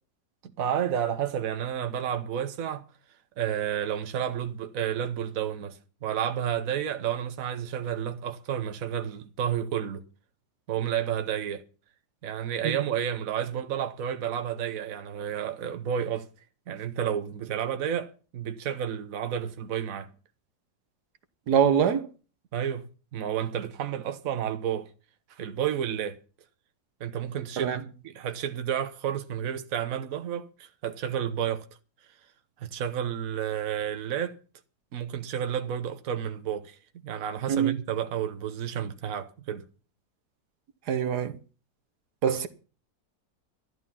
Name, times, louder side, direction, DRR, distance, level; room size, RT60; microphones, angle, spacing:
voice 1, 0.6-2.8 3.4-10.0 10.7-11.6 12.2-16.3 16.7-20.1 22.5-24.9 25.3-26.2 27.0-27.8 28.0-31.6 32.6-34.4 34.9-36.8 37.0-39.6, right 9 dB, 60° right, 1.4 m, -31 dB
voice 2, 21.5-22.1 27.6-27.8 37.5-37.7 40.9-41.4 42.2-42.5, right 8 dB, 85° right, 1.7 m, -24 dB
12.5 x 11.5 x 5.7 m
omnidirectional pair, 1.7 m